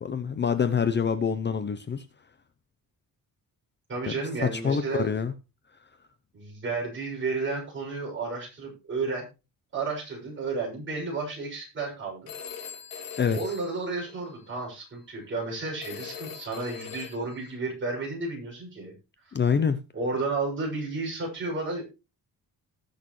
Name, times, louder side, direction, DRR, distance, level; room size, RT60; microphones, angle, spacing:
voice 1, 0.0-2.1 4.1-4.2 4.4-5.3 13.2-13.4 19.3-19.8, left 6 dB, 30° left, 0.6 m, -26 dB
voice 2, 3.9-5.1 6.3-9.2 9.7-12.3 13.3-18.9 19.2-19.3 19.9-21.8, right 3 dB, 35° right, 6.6 m, -32 dB
Telephone, 12.3-14.6 15.8-17.5, left 7 dB, 75° left, 2.8 m, -42 dB
19.5 x 6.5 x 3.2 m
wide cardioid pair, 175°, 35 cm